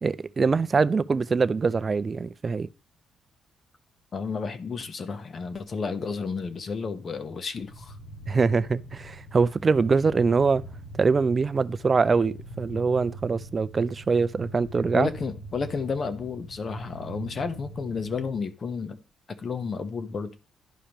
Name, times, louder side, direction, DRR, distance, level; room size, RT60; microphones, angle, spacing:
voice 1, 0.0-2.7 8.3-10.6 11.0-15.1, right 4 dB, 35° right, 0.4 m, -23 dB
voice 2, 4.1-8.0 14.9-19.0 19.4-20.3, left 5 dB, 45° left, 1.0 m, -32 dB
sound 1, 7.6-18.4, right 1 dB, 65° left, 1.8 m, -43 dB
11.5 x 5.0 x 3.0 m
cardioid pair, 90°, 0 cm